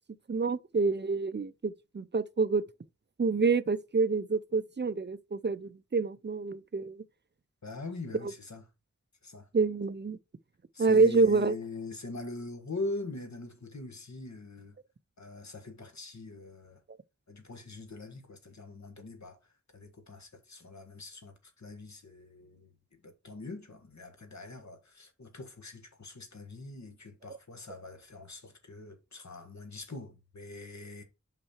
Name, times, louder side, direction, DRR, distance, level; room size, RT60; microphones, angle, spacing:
voice 1, 0.3-2.6 3.2-7.0 9.5-10.2 10.8-11.5, right 4 dB, 35° right, 0.5 m, -27 dB
voice 2, 7.6-8.6 9.2-9.5 10.7-14.8 15.2-16.8 17.3-19.4 19.7-31.0, left 2 dB, 65° left, 1.6 m, -43 dB
5.8 x 5.7 x 4.4 m
wide cardioid pair, 70°, 30 cm